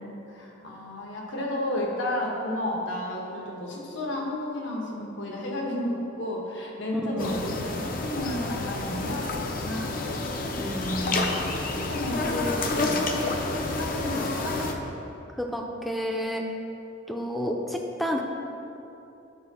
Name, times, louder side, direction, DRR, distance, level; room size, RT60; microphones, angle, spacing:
voice 1, 0.0-10.0 11.0-13.1 13.5-14.6, left 1 dB, 75° left, -2 dB, 1.3 m, -32 dB
voice 2, 6.9-7.5 10.6-11.2 15.4-16.4 17.1-18.2, equal, ahead, 1 dB, 0.5 m, -30 dB
sound 1, 7.2-14.7, left 2 dB, 45° left, 0.6 m, -29 dB
9.7 x 4.6 x 4.2 m, 2.9 s
head